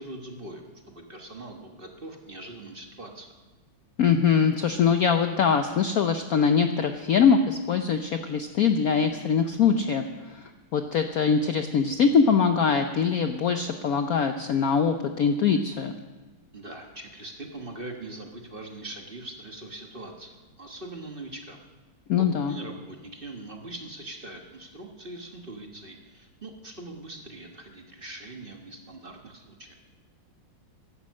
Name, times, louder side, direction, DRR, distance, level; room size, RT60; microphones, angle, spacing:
voice 1, 0.0-3.4 16.5-21.6 22.2-29.8, right 2 dB, 30° right, 2 dB, 1.2 m, -42 dB
voice 2, 4.0-15.9 22.1-22.6, left 6 dB, 65° left, 7 dB, 0.9 m, -23 dB
15.0 x 11.5 x 6.4 m, 1.3 s
omnidirectional pair, 2.2 m